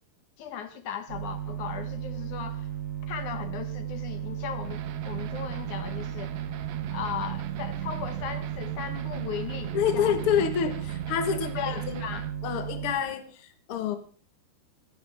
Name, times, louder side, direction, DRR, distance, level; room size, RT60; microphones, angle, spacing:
voice 1, 0.4-2.7 3.0-6.4 6.9-10.3 11.4-12.3, left 8 dB, 65° left, 9 dB, 2.1 m, -37 dB
sound 1, 1.1-12.9, right 9 dB, 45° right, 5.0 m, -35 dB
sound 2, 4.6-12.3, right 12 dB, 80° right, 3.3 m, -40 dB
voice 2, 9.7-12.0 12.4-13.9, left 8 dB, 85° left, 7 dB, 1.2 m, -28 dB
25.5 x 11.0 x 3.5 m, 0.43 s
omnidirectional pair, 5.0 m